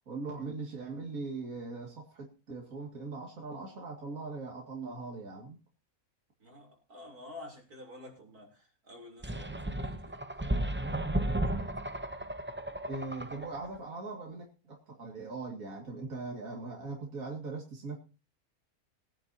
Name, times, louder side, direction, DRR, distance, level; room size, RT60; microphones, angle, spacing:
voice 1, 0.1-5.6 12.8-18.0, right 3 dB, 65° right, 2.7 m, -40 dB
voice 2, 6.4-10.2, left 2 dB, 85° right, 4.0 m, -49 dB
sound 1, 9.2-13.8, right 1 dB, 15° right, 0.4 m, -34 dB
21.0 x 10.5 x 2.8 m
omnidirectional pair, 1.6 m